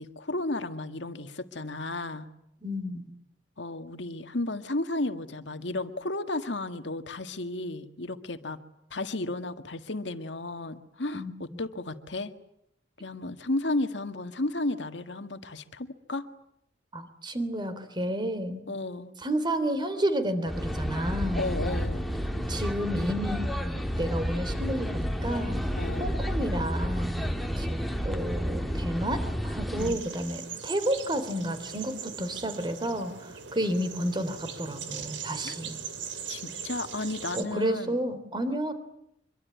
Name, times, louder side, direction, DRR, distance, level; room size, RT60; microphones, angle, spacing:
voice 1, 0.0-2.3 3.6-8.6 8.9-12.3 13.0-16.2 18.7-19.1 21.3-22.0 25.8-26.1 29.7-30.0 35.4-35.5 36.3-38.0, left 2 dB, 75° left, 8 dB, 1.9 m, -33 dB
voice 2, 2.6-3.1 11.1-11.3 16.9-18.6 19.2-21.5 22.3-25.6 26.0-35.8 37.3-38.7, right 1 dB, 25° right, 11 dB, 3.4 m, -31 dB
sound 1, 20.5-29.9, equal, ahead, 2.1 m, -30 dB
sound 2, 29.8-37.4, right 7 dB, 90° right, 2.8 m, -40 dB
25.0 x 23.5 x 9.5 m, 0.79 s
head